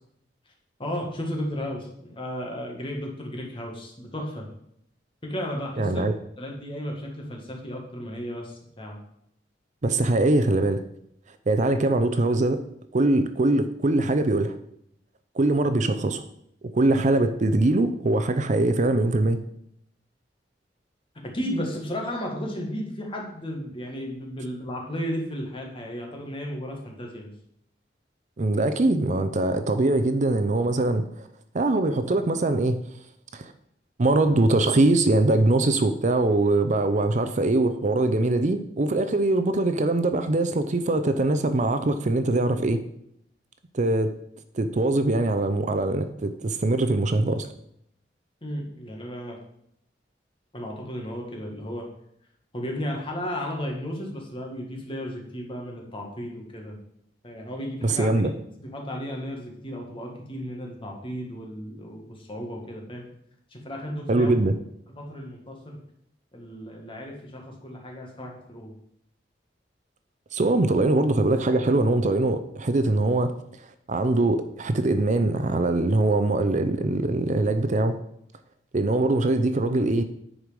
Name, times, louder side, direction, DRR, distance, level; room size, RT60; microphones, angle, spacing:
voice 1, 0.8-4.5 5.2-6.0 6.4-9.0 21.2-27.3 48.4-49.4 50.5-51.8 52.5-56.8 57.2-58.1 58.6-63.1 63.5-64.3 64.9-65.8 66.3-68.7, equal, 30° left, 0 dB, 2.0 m, -34 dB
voice 2, 5.8-6.1 9.8-10.8 11.5-12.6 12.9-14.5 15.4-16.2 16.6-19.4 28.4-31.3 31.5-32.8 33.3-33.5 34.0-42.8 43.7-44.1 44.5-47.5 57.8-58.3 64.1-64.5 70.3-73.3 73.9-78.0 78.7-80.0, right 2 dB, 45° right, 9 dB, 0.6 m, -22 dB
10.0 x 4.8 x 5.2 m, 0.74 s
head